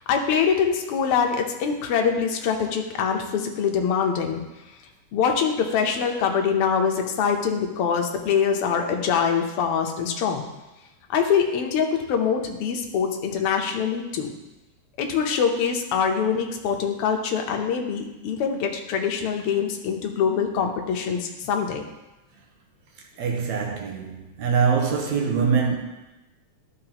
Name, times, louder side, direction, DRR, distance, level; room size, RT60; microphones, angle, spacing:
voice 1, 0.1-4.4 5.1-10.5 11.1-14.3 15.0-21.8, left 6 dB, 70° left, 3 dB, 1.4 m, -24 dB
voice 2, 23.2-25.8, right 6 dB, 75° right, 0 dB, 2.2 m, -23 dB
12.0 x 5.6 x 2.9 m, 1.0 s
omnidirectional pair, 3.4 m